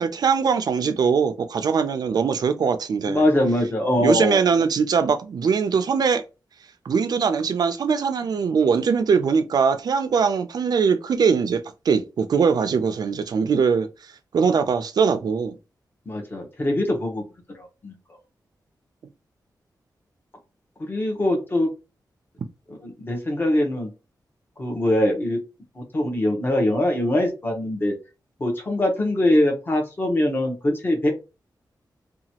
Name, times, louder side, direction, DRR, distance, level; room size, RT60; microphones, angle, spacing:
voice 1, 0.0-3.2 4.0-6.2 6.9-11.6 11.9-13.9 14.3-15.5, right 6 dB, 65° right, 0.4 m, -21 dB
voice 2, 3.1-4.4 16.1-17.2 17.6-17.9 20.8-21.7 22.7-23.9 24.6-25.4 25.7-27.9 28.4-31.1, left 1 dB, 30° left, 0.9 m, -22 dB
2.8 x 2.3 x 2.8 m
wide cardioid pair, 150°, 7 cm